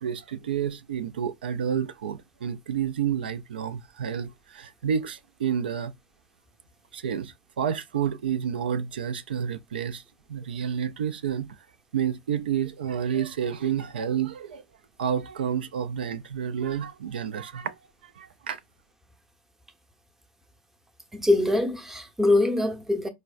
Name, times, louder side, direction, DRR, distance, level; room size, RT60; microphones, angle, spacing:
voice 1, 0.0-5.9 6.9-10.0 10.3-11.5 11.9-14.6 15.0-17.7 18.0-18.6, right 8 dB, 80° right, 0.4 m, -30 dB
voice 2, 21.1-23.1, left 2 dB, 5° right, 0.7 m, -23 dB
4.6 x 2.1 x 2.3 m
hypercardioid pair, 95°, 5 cm